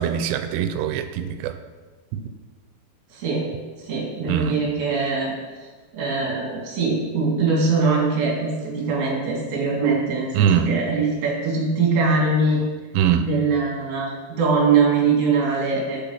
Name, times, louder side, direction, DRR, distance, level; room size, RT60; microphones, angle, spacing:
voice 1, 0.0-1.6 2.1-2.2 4.3-4.6 10.3-10.7 12.9-13.3, right 9 dB, 90° right, 9 dB, 3.1 m, -22 dB
voice 2, 3.1-3.5 3.8-5.3 5.9-12.6 13.2-16.1, right 4 dB, 45° right, -3 dB, 3.0 m, -22 dB
8.2 x 6.9 x 5.8 m, 1.4 s
omnidirectional pair, 5.5 m